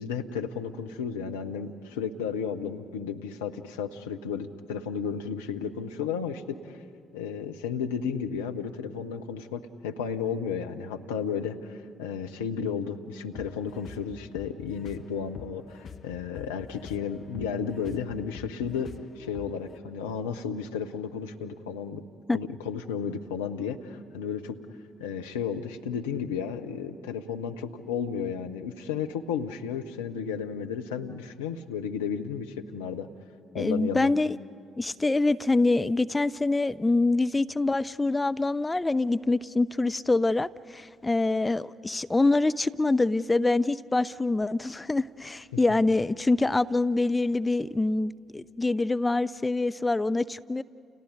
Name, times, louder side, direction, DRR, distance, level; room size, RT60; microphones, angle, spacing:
voice 1, 0.0-6.8 7.1-22.0 22.3-24.6 25.0-33.1 33.5-34.1 45.5-45.6, left 7 dB, 75° left, 5 dB, 0.9 m, -33 dB
sound 1, 13.3-19.8, left 6 dB, 45° left, 1.2 m, -46 dB
voice 2, 33.5-34.4 34.8-50.6, left 2 dB, 20° left, 14 dB, 0.5 m, -25 dB
30.0 x 29.5 x 5.3 m, 2.4 s
figure-of-eight pair, 45°, 0 cm